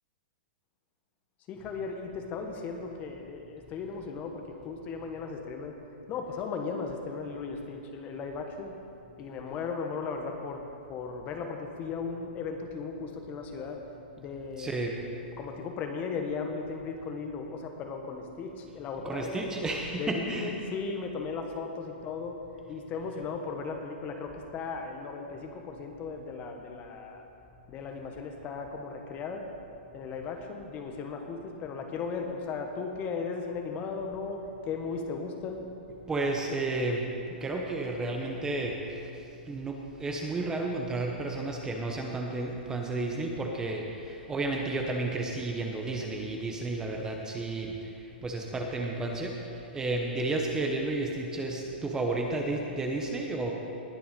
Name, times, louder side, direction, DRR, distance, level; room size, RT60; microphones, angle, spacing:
voice 1, 1.5-5.7 6.1-8.7 9.2-13.8 14.2-14.9 15.4-19.4 20.0-22.4 22.7-27.2 27.7-29.4 29.9-35.6, left 5 dB, 25° left, 4 dB, 1.2 m, -36 dB
voice 2, 14.6-15.0 19.0-20.5 36.1-37.1 37.4-38.8 39.5-53.5, right 2 dB, 10° right, 1 dB, 0.9 m, -32 dB
19.5 x 6.9 x 5.2 m, 2.6 s
hypercardioid pair, 150°, 6 cm